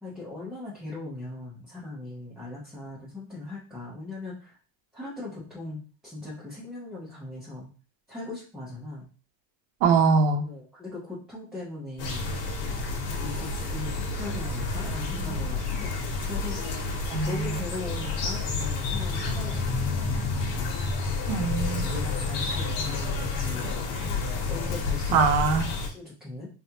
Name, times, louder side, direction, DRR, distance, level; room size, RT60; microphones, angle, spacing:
voice 1, 0.0-4.6 4.9-7.7 8.1-9.1 10.4-12.3 13.0-16.6 17.2-20.0 20.6-20.8 21.8-23.7 24.0-26.5, left 2 dB, ahead, -8 dB, 0.6 m, -39 dB
voice 2, 9.8-10.4 17.1-17.6 21.3-21.9 25.1-25.6, right 5 dB, 75° right, 6 dB, 0.9 m, -22 dB
sound 1, 12.0-25.9, left 3 dB, 80° left, 1.1 m, -30 dB
3.4 x 2.4 x 2.8 m, 0.37 s
cardioid pair, 150°, 49 cm